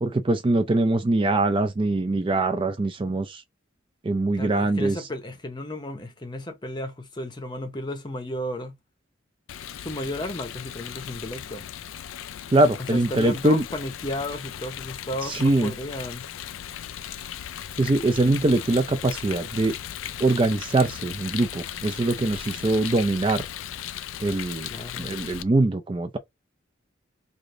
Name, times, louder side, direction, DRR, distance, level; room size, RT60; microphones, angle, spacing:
voice 1, 0.0-3.4 4.0-5.0 12.5-13.6 15.2-15.7 17.8-19.7 20.2-23.4 24.2-24.7 25.0-26.2, right 2 dB, 25° right, 0.4 m, -23 dB
voice 2, 4.3-8.8 9.8-11.6 12.8-16.3 24.7-25.1, left 1 dB, 20° left, 0.7 m, -33 dB
Rain, 9.5-25.4, left 10 dB, 85° left, 0.4 m, -37 dB
3.3 x 2.5 x 3.7 m
head